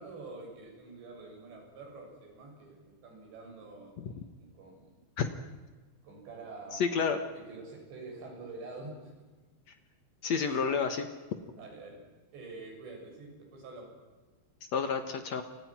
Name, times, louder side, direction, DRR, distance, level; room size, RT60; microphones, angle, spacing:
voice 1, 0.0-5.0 6.0-6.8 7.3-9.1 10.5-10.9 11.6-12.0 12.3-13.9, right 3 dB, 70° right, 1 dB, 9.3 m, -47 dB
voice 2, 6.7-7.2 10.2-11.1 14.7-15.4, left 6 dB, 70° left, 8 dB, 1.6 m, -29 dB
30.0 x 25.5 x 6.1 m, 1.3 s
omnidirectional pair, 5.2 m